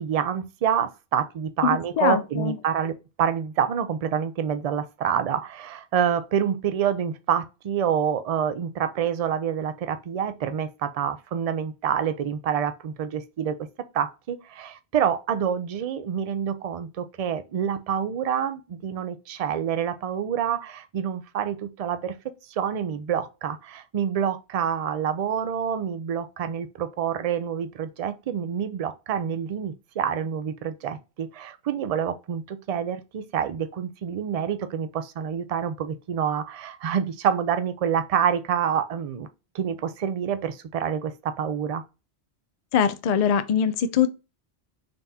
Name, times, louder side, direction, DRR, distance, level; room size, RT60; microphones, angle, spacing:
voice 1, 0.0-13.6 13.9-39.3 39.5-41.8, right 8 dB, 55° right, 0.4 m, -27 dB
voice 2, 2.0-2.5 42.7-44.1, left 8 dB, 55° left, 0.4 m, -22 dB
3.9 x 3.4 x 2.7 m
omnidirectional pair, 1.1 m